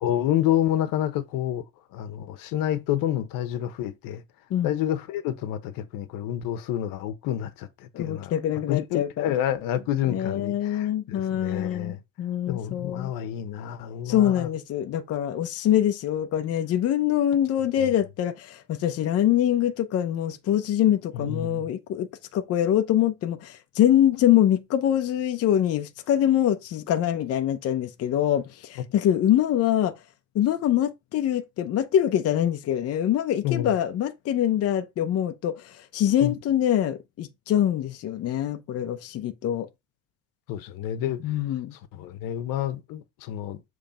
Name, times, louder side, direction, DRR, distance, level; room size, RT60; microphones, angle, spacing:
voice 1, 0.0-1.6 1.9-4.2 4.6-8.3 8.7-12.0 12.5-14.5 17.8-17.9 21.1-21.7 33.4-33.7 36.2-36.4 40.5-41.2 41.9-43.6, left 11 dB, 85° left, 1.1 m, -28 dB
voice 2, 7.9-9.3 10.1-13.1 14.1-29.9 30.3-39.7 41.2-41.7, left 11 dB, 45° left, 0.8 m, -24 dB
7.2 x 3.5 x 5.1 m
cardioid pair, 165°, 33 cm